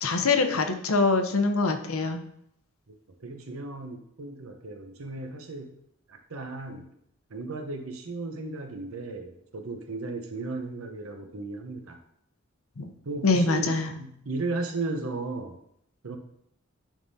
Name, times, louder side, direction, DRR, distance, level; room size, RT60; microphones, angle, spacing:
voice 1, 0.0-2.2 12.8-12.9 13.2-13.9, left 3 dB, 85° left, 6 dB, 0.7 m, -24 dB
voice 2, 2.9-5.8 6.1-6.9 7.3-12.0 13.0-15.6 16.0-16.2, right 3 dB, 85° right, 5 dB, 0.9 m, -35 dB
10.0 x 3.7 x 2.7 m, 0.73 s
head